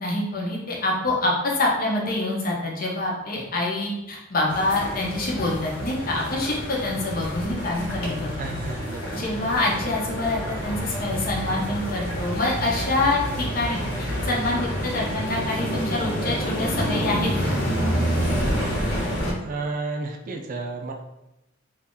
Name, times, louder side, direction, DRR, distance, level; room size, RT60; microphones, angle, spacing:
voice 1, 0.0-8.3 9.1-17.6, left 2 dB, 45° left, -2 dB, 0.8 m, -26 dB
sound 1, 4.5-19.3, equal, 75° left, 1.2 m, -28 dB
voice 2, 8.4-9.0 19.4-20.9, right 3 dB, 45° right, 2 dB, 0.4 m, -31 dB
2.8 x 2.5 x 3.6 m, 0.89 s
head